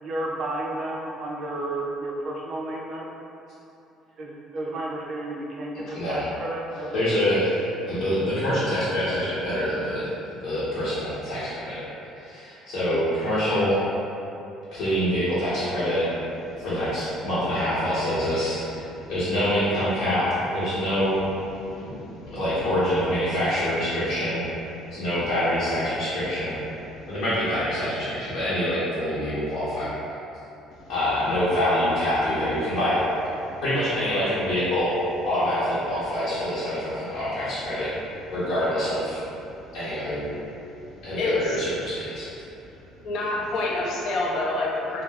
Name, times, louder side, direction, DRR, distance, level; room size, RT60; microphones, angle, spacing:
voice 1, 0.0-3.1 4.2-7.4, right 1 dB, 45° right, -2 dB, 0.4 m, -32 dB
voice 2, 5.9-6.3 6.9-10.1 10.4-11.8 12.2-13.8 14.7-16.1 16.6-18.8 19.1-21.3 21.7-21.9 22.3-24.4 24.9-26.6 27.1-29.9 30.9-33.0 33.6-37.9 38.3-39.2 39.7-40.2 41.0-42.3, equal, 75° left, -13 dB, 0.8 m, -25 dB
voice 3, 21.5-22.4 24.8-25.0 26.8-27.1 30.7-30.9 33.5-33.6 39.6-39.7 40.7-41.7 43.0-45.0, left 2 dB, 60° left, -4 dB, 0.5 m, -30 dB
2.3 x 2.3 x 3.2 m, 2.8 s
cardioid pair, 130°, 0 cm